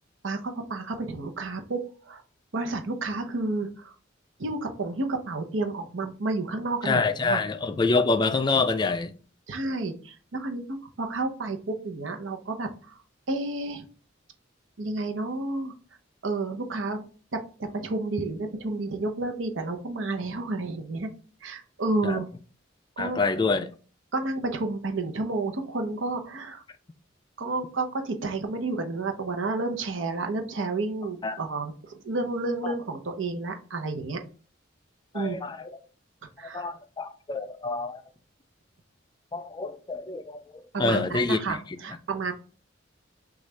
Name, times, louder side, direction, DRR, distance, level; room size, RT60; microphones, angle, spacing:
voice 1, 0.2-2.2 2.5-3.9 4.4-7.4 9.5-13.0 13.3-13.8 14.8-15.7 16.2-17.0 17.3-21.1 21.4-22.3 23.0-23.2 24.1-26.6 27.4-34.2 35.1-35.4 36.4-36.7 40.7-42.3, right 2 dB, 85° right, 0.8 m, -31 dB
voice 2, 6.8-9.1 22.0-22.2 23.0-23.7 31.2-31.4 32.6-32.7 35.1-35.8 36.5-38.0 39.3-41.6, left 3 dB, 25° left, 0.3 m, -26 dB
6.2 x 2.4 x 3.2 m
head